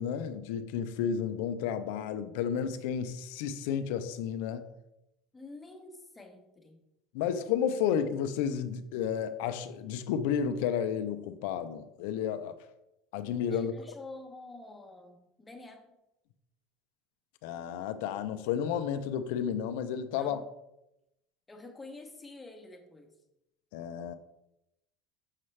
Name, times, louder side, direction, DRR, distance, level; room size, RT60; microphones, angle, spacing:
voice 1, 0.0-4.6 7.1-12.6 13.1-13.7 17.4-20.4 23.7-24.1, left 8 dB, 75° left, 10 dB, 0.5 m, -32 dB
voice 2, 5.3-6.8 13.5-15.9 20.1-20.4 21.5-23.2, left 2 dB, 10° left, 3 dB, 0.9 m, -48 dB
6.5 x 5.6 x 3.2 m, 0.88 s
cardioid pair, 150°, 0 cm